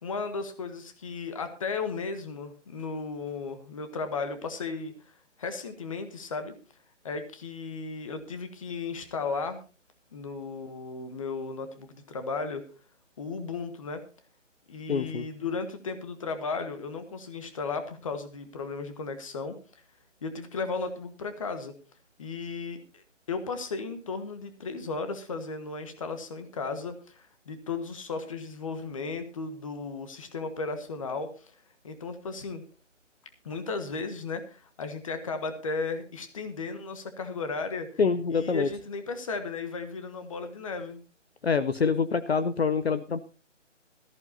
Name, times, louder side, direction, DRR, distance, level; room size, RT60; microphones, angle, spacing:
voice 1, 0.0-5.1 5.4-6.5 7.0-9.6 10.1-12.6 13.2-14.0 14.7-19.6 20.2-21.7 22.2-31.5 31.8-32.6 33.4-38.0 38.3-41.0, left 4 dB, 25° left, 9 dB, 1.4 m, -35 dB
voice 2, 14.9-15.2 38.0-38.7 41.4-43.2, left 5 dB, 55° left, 12 dB, 0.8 m, -25 dB
18.0 x 14.0 x 2.7 m, 0.34 s
figure-of-eight pair, 165°, 37 cm